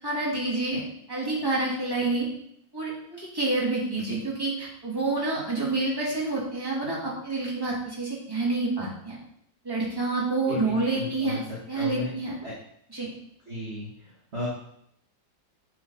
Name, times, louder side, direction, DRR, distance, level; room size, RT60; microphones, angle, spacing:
voice 1, 0.0-0.8 1.1-2.3 2.7-9.2 9.6-11.4 11.7-12.4 12.9-13.1, right 2 dB, 10° right, -6 dB, 2.5 m, -28 dB
voice 2, 10.5-11.4 11.7-12.1 12.4-12.5 13.5-14.5, equal, 35° right, -6 dB, 1.7 m, -35 dB
8.8 x 4.8 x 4.1 m, 0.70 s
omnidirectional pair, 2.0 m